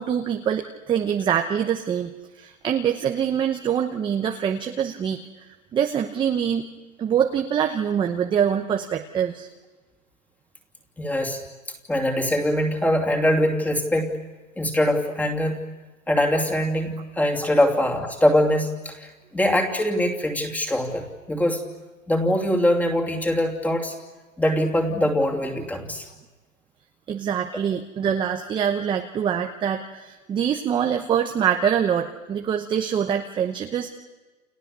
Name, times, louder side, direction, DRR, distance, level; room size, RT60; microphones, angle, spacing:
voice 1, 0.0-2.1 2.4-5.2 5.7-6.7 7.0-9.5 27.1-33.9, right 8 dB, 10° right, 4 dB, 0.9 m, -24 dB
voice 2, 11.0-11.4 11.9-14.2 14.6-15.7 16.1-21.7 22.1-23.9 24.4-26.1, left 1 dB, 5° left, 1 dB, 2.8 m, -23 dB
30.0 x 29.0 x 6.8 m, 1.3 s
hypercardioid pair, 140°, 41 cm